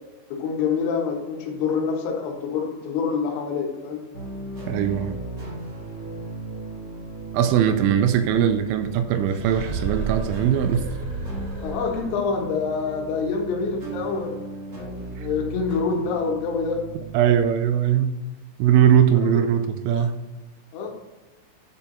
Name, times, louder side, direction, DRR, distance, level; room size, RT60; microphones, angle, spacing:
voice 1, 0.3-4.0 11.6-14.4 14.8-16.8 19.1-19.3 20.7-20.9, left 5 dB, 85° left, 0 dB, 3.8 m, -26 dB
sound 1, 4.1-17.4, right 3 dB, 35° right, 1.4 m, -36 dB
voice 2, 4.7-5.2 7.3-10.8 17.1-18.1 18.6-20.1, right 9 dB, 85° right, 10 dB, 2.8 m, -20 dB
sound 2, 9.3-12.3, right 4 dB, 65° right, 3.2 m, -31 dB
10.5 x 4.5 x 3.9 m, 1.1 s
omnidirectional pair, 5.5 m